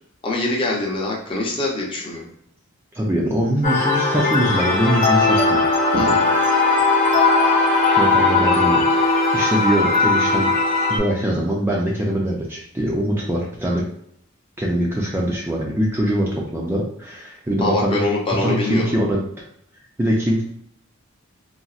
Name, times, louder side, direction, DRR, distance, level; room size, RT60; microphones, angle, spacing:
voice 1, 0.2-2.3 5.9-6.3 17.6-18.9, left 2 dB, 25° left, -2 dB, 0.6 m, -23 dB
voice 2, 2.9-5.6 7.6-10.5 10.9-13.8 14.6-18.0 18.4-19.2 20.0-20.4, equal, 10° right, -3 dB, 0.4 m, -22 dB
sound 1, 3.6-11.0, left 3 dB, 40° left, 0.9 m, -18 dB
3.9 x 2.0 x 2.4 m, 0.68 s
head